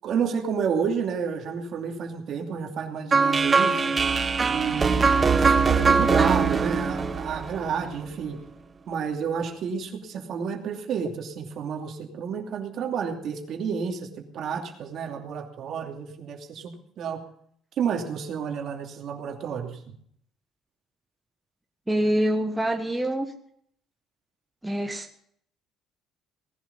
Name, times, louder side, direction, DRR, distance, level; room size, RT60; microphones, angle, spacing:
voice 1, 0.0-3.9 4.5-8.4 8.9-14.1 14.3-17.2 17.8-19.8, right 6 dB, 55° right, 3 dB, 2.7 m, -30 dB
sound 1, 3.1-8.1, right 5 dB, 25° right, 1.0 m, -22 dB
voice 2, 21.9-23.3 24.6-25.2, right 1 dB, 10° right, 3 dB, 1.3 m, -25 dB
19.0 x 11.5 x 5.5 m, 0.66 s
cardioid pair, 120°, 0 cm